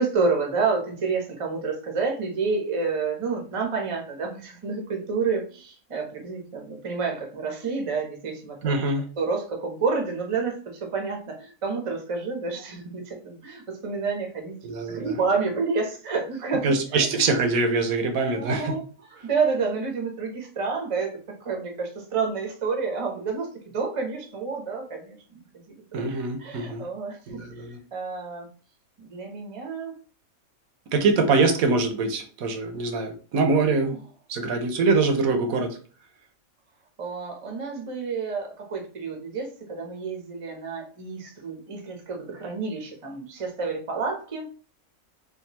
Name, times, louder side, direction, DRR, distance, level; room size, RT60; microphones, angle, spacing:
voice 1, 0.0-14.6 14.9-16.7 16.9-17.1 18.4-23.5 23.7-25.4 25.7-27.4 27.9-28.5 29.0-29.9 33.7-34.0 35.4-35.6 37.0-44.5, right 4 dB, 30° right, 2 dB, 0.6 m, -29 dB
voice 2, 8.6-9.0 14.6-15.2 16.6-18.7 25.9-26.8 27.3-27.8 30.9-34.0 34.3-35.8, right 3 dB, 80° right, 5 dB, 1.1 m, -24 dB
3.6 x 2.5 x 2.8 m, 0.39 s
omnidirectional pair, 1.5 m